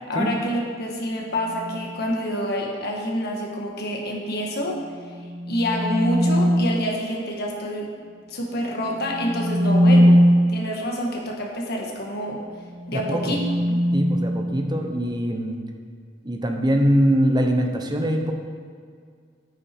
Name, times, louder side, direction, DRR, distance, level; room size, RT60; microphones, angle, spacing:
voice 1, 0.1-4.8 5.5-7.9 8.3-10.2 10.5-12.4 12.9-13.4, equal, 55° left, 0 dB, 1.5 m, -27 dB
sound 1, 1.4-1.9 5.0-6.9 9.0-10.7 12.7-15.0, equal, 75° right, 1.7 m, -21 dB
voice 2, 12.9-13.4 13.9-15.6 16.2-18.3, equal, 20° right, 4 dB, 0.9 m, -22 dB
9.2 x 8.5 x 4.5 m, 2.1 s
head